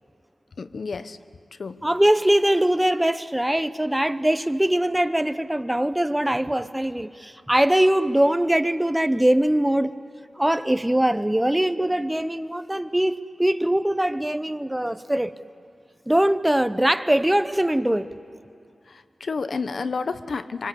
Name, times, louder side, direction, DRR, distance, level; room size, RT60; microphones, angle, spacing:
voice 1, 0.6-1.2 1.6-1.8 18.9-20.7, left 4 dB, 70° left, 0.9 m, -30 dB
voice 2, 1.8-9.9 10.4-15.3 16.1-18.1, right 1 dB, 10° right, 0.8 m, -22 dB
25.5 x 24.5 x 8.4 m
wide cardioid pair, 75°, 0 cm